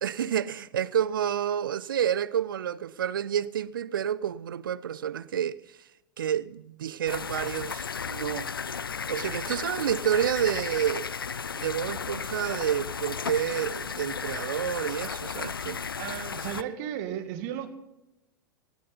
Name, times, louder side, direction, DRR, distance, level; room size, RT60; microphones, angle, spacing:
voice 1, 0.0-5.6 6.2-8.5 9.1-11.1 11.5-15.9, right 9 dB, 70° right, 0.7 m, -29 dB
sound 1, 7.1-16.6, left 6 dB, 80° left, 0.5 m, -34 dB
voice 2, 15.9-17.7, right 10 dB, 50° right, 2.1 m, -35 dB
18.0 x 13.5 x 4.0 m
figure-of-eight pair, 90°, 12 cm